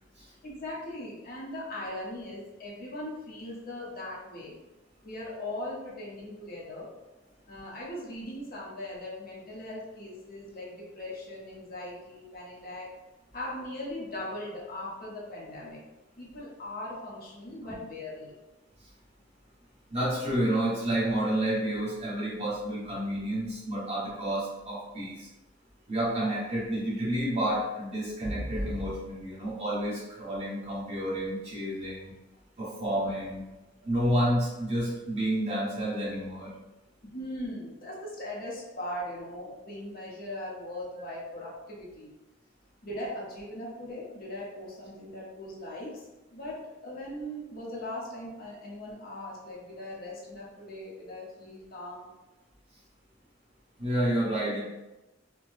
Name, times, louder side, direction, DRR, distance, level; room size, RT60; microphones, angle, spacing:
voice 1, 0.4-4.6 5.0-6.9 7.5-12.9 13.3-15.8 16.2-18.3 37.0-42.1 42.8-46.0 46.3-52.1, left 1 dB, 50° left, -5 dB, 0.9 m, -39 dB
voice 2, 19.9-25.3 25.9-32.1 32.6-33.4 33.8-36.5 53.8-54.6, right 1 dB, 35° right, -7 dB, 1.3 m, -30 dB
4.5 x 2.2 x 2.6 m, 1.0 s
head